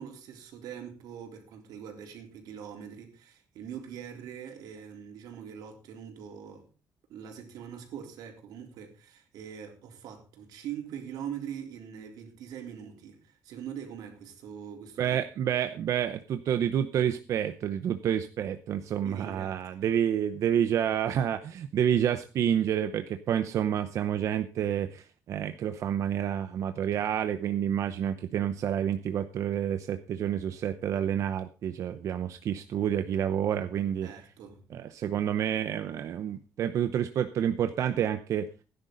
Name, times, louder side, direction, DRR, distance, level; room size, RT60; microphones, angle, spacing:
voice 1, 0.0-6.7 7.1-15.2 19.0-19.9 34.0-34.7, right 8 dB, 85° right, 3.7 m, -43 dB
voice 2, 15.0-34.1 34.7-38.5, right 9 dB, 50° right, 0.8 m, -29 dB
16.5 x 10.5 x 3.9 m
cardioid pair, 175°, 6 cm